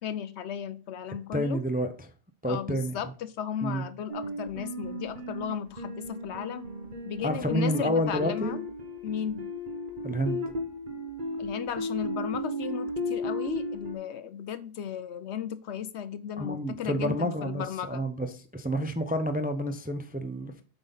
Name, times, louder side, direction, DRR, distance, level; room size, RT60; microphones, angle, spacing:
voice 1, 0.0-1.6 2.5-6.7 7.0-8.6 9.0-9.5 11.4-18.1, left 9 dB, 70° left, 0.8 m, -35 dB
voice 2, 1.3-1.9 2.4-3.0 3.6-3.8 7.2-8.6 10.0-10.4 16.4-20.6, equal, 10° right, 0.4 m, -29 dB
sound 1, 4.1-14.0, left 1 dB, 40° right, 1.4 m, -35 dB
7.9 x 5.4 x 3.9 m
omnidirectional pair, 1.3 m